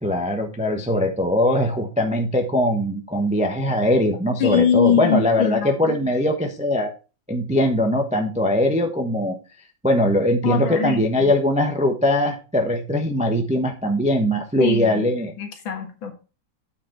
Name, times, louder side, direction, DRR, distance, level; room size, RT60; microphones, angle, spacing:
voice 1, 0.0-6.9 7.3-9.4 9.8-15.3, left 1 dB, 5° right, 3 dB, 0.5 m, -21 dB
voice 2, 4.4-6.0 10.4-11.3 14.6-15.1 15.4-16.1, left 7 dB, 70° left, 5 dB, 2.3 m, -22 dB
9.0 x 5.0 x 4.6 m, 0.33 s
omnidirectional pair, 2.2 m